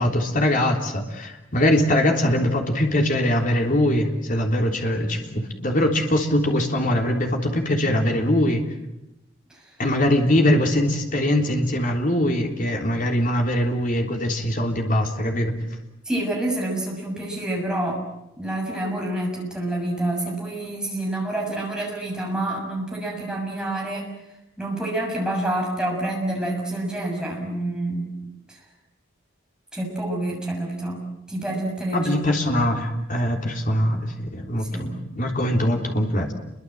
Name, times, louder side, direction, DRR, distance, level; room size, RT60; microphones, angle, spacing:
voice 1, 0.0-8.6 9.8-15.5 31.9-36.3, left 1 dB, 45° left, 2 dB, 3.5 m, -22 dB
voice 2, 16.0-18.0 18.4-24.1 24.6-28.1 28.5-28.6 29.7-31.0 31.3-32.4 34.7-35.0, right 1 dB, 5° right, -1 dB, 6.8 m, -28 dB
29.0 x 23.0 x 7.8 m, 0.89 s
head